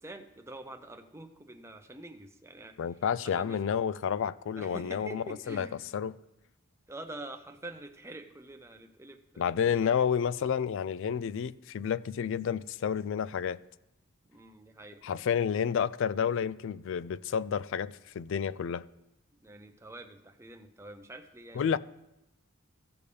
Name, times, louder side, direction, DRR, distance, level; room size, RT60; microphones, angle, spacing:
voice 1, 0.0-2.8 3.2-3.6 4.6-5.9 6.9-9.6 9.8-10.1 14.2-15.2 19.4-21.8, right 2 dB, 15° right, 0.7 m, -46 dB
voice 2, 2.8-5.7 5.9-6.1 9.4-13.6 15.0-18.9 21.6-21.8, left 7 dB, 60° left, 0.3 m, -30 dB
16.0 x 6.8 x 3.4 m
head